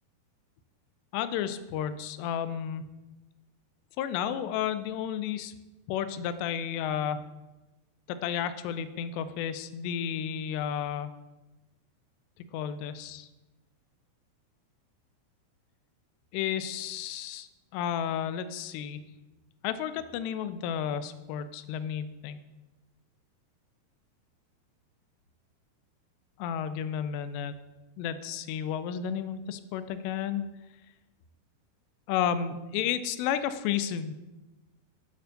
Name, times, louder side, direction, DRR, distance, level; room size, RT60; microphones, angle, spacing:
voice 1, 1.1-2.9 4.0-5.5 5.9-7.2 8.1-11.1 12.5-13.3 16.3-19.0 19.6-22.4 26.4-27.5 28.0-30.4 32.1-34.1, left 9 dB, 90° left, 12 dB, 2.7 m, -32 dB
9.2 x 3.4 x 6.4 m, 1.1 s
omnidirectional pair, 4.8 m